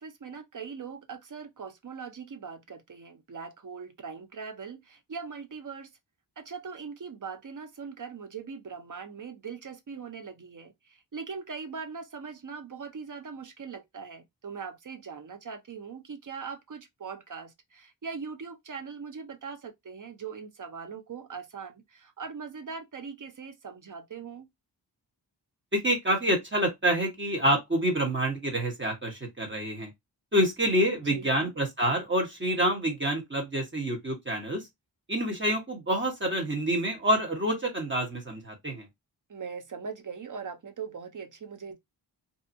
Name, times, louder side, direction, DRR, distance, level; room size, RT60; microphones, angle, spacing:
voice 1, 0.0-5.9 6.4-24.5 31.1-31.5 39.3-41.8, right 5 dB, 45° right, 0.7 m, -41 dB
voice 2, 25.7-29.9 30.3-34.7 35.1-38.9, equal, 25° right, 1.2 m, -27 dB
2.7 x 2.3 x 2.6 m
cardioid pair, 60°, 43 cm